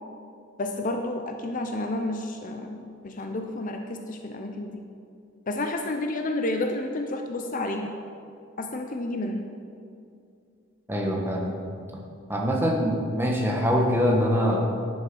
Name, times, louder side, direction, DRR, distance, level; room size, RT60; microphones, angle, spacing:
voice 1, 0.6-4.8 5.5-7.9 8.6-9.4, left 2 dB, 40° left, 4 dB, 0.6 m, -30 dB
voice 2, 10.9-11.5 12.3-14.6, equal, 10° right, -1 dB, 1.2 m, -24 dB
10.0 x 7.1 x 5.4 m, 2.5 s
head